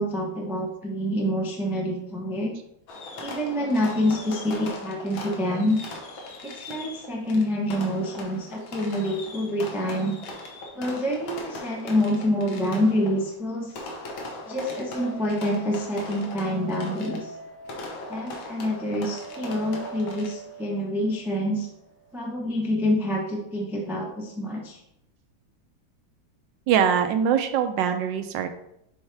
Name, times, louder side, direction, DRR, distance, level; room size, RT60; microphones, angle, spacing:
voice 1, 0.0-2.6 3.2-5.8 6.4-10.2 10.7-13.7 14.5-17.3 18.1-21.7 22.1-24.8, left 1 dB, 5° right, -1 dB, 0.3 m, -27 dB
Fireworks, 2.9-20.6, left 2 dB, 90° left, 1.8 m, -39 dB
sound 1, 3.7-6.9 7.1-7.2 14.4-22.3, right 2 dB, 75° left, 2.0 m, -45 dB
voice 2, 26.7-28.5, right 8 dB, 75° right, 8 dB, 1.3 m, -23 dB
7.1 x 4.4 x 3.3 m, 0.78 s
omnidirectional pair, 2.1 m